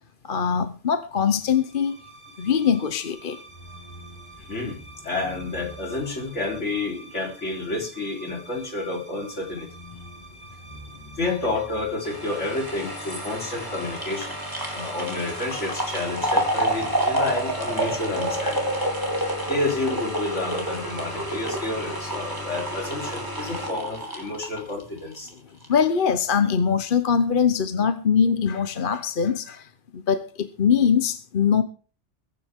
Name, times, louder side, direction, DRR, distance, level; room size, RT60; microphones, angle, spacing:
voice 1, 0.2-2.0 2.4-3.4 25.7-31.6, left 7 dB, 50° left, 1.0 m, -22 dB
sound 1, 1.4-15.5, right 1 dB, 20° left, 3.0 m, -46 dB
voice 2, 4.4-9.7 11.2-14.4 14.7-18.6 19.4-25.3, left 2 dB, 70° left, 4.2 m, -30 dB
sound 2, 12.1-25.3 25.6-25.7, right 1 dB, 15° right, 3.7 m, -29 dB
22.5 x 9.8 x 3.6 m
omnidirectional pair, 1.2 m